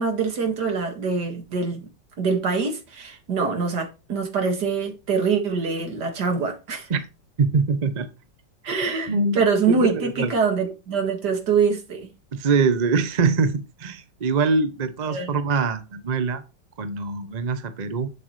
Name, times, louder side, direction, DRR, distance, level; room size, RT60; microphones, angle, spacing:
voice 1, 0.0-1.9 2.2-6.9 8.6-12.1 15.1-15.3, right 5 dB, 65° right, 2.3 m, -24 dB
voice 2, 7.4-8.1 9.1-10.3 12.3-16.4 16.8-18.1, right 4 dB, 50° right, 0.5 m, -23 dB
7.9 x 7.6 x 3.1 m
omnidirectional pair, 2.0 m